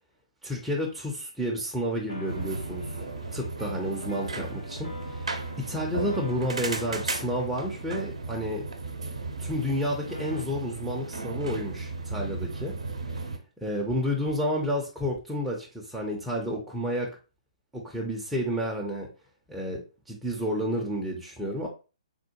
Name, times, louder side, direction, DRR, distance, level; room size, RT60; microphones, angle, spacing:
voice 1, 0.4-2.9 3.3-8.6 9.4-12.7 13.6-17.2 17.7-19.1 19.5-21.7, equal, 5° right, -2 dB, 0.5 m, -30 dB
sound 1, 2.1-9.7 10.1-10.4, left 1 dB, 75° left, 1.4 m, -44 dB
sound 2, 2.3-13.4, right 3 dB, 65° right, 0.6 m, -35 dB
3.6 x 2.1 x 2.8 m, 0.33 s
figure-of-eight pair, 125°, 4 cm